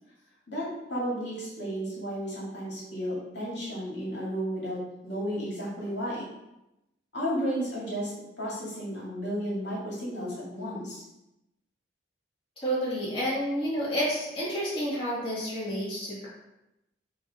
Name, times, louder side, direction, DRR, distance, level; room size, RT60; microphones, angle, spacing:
voice 1, 0.5-6.3 7.1-8.1 8.4-11.0, equal, 65° left, -6 dB, 2.4 m, -33 dB
voice 2, 12.6-16.3, equal, 25° left, -9 dB, 2.5 m, -30 dB
6.8 x 3.2 x 5.3 m, 0.90 s
head